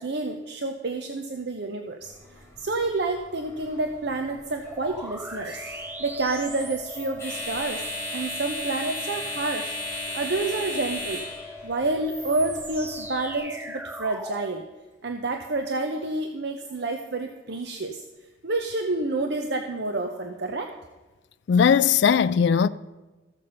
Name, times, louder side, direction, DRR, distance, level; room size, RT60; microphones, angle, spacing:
voice 1, 0.0-2.1 2.6-7.8 8.1-9.8 10.1-11.2 11.6-14.6 15.0-18.0 18.4-20.7, right 2 dB, 55° right, 0.7 m, -29 dB
sound 1, 2.0-13.4, left 1 dB, 15° left, 3.5 m, -37 dB
sound 2, 4.6-14.5, equal, 10° right, 0.7 m, -39 dB
voice 2, 21.5-22.7, left 7 dB, 60° left, 0.3 m, -19 dB
14.5 x 6.8 x 5.5 m
head